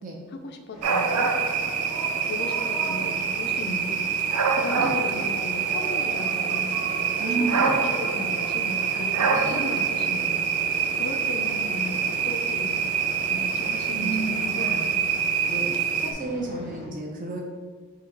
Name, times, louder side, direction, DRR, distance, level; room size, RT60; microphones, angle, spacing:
voice 1, 0.3-1.3 2.1-4.1 4.5-12.8 13.3-14.1 14.4-15.1, left 2 dB, 50° left, 5 dB, 0.5 m, -36 dB
sound 1, 0.7-16.9, equal, ahead, 0.9 m, -42 dB
sound 2, 0.8-16.1, right 6 dB, 90° right, 0.5 m, -25 dB
sound 3, 4.9-14.4, right 1 dB, 50° right, 1.1 m, -42 dB
voice 2, 7.2-7.8 9.2-9.6 13.9-14.4 15.5-17.4, right 2 dB, 35° right, 0 dB, 0.6 m, -31 dB
3.8 x 2.8 x 4.6 m, 1.5 s
head